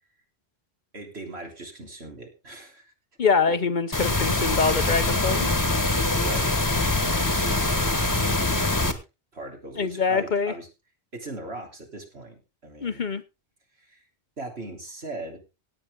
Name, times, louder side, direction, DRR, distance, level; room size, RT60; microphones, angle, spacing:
voice 1, 0.9-2.9 5.3-5.4 6.2-9.0 9.3-10.7 11.1-13.0 13.8-14.0 14.4-15.4, right 2 dB, 70° right, 2 dB, 3.7 m, -39 dB
voice 2, 3.2-5.5 9.8-10.5 12.8-13.2, left 5 dB, 50° left, 12 dB, 0.8 m, -24 dB
sound 1, 3.9-8.9, left 2 dB, 20° left, 1.3 m, -24 dB
17.0 x 8.9 x 3.7 m, 0.28 s
omnidirectional pair, 1.1 m